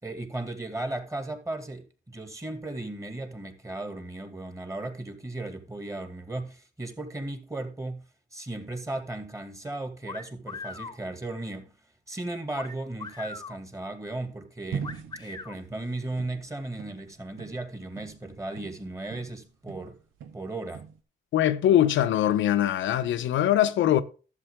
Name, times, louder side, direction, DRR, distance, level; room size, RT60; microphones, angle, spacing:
voice 1, 0.0-8.0 8.3-11.7 12.1-20.0 20.3-20.8, right 2 dB, 15° right, 2.4 m, -36 dB
sound 1, 10.1-11.0 12.6-13.6 14.8-15.6, left 4 dB, 20° left, 1.2 m, -39 dB
sound 2, 14.7-19.4 19.7-21.0, right 7 dB, 80° right, 1.6 m, -40 dB
voice 2, 21.3-24.0, left 11 dB, 75° left, 0.9 m, -22 dB
12.0 x 7.6 x 3.7 m
cardioid pair, 90°, 20 cm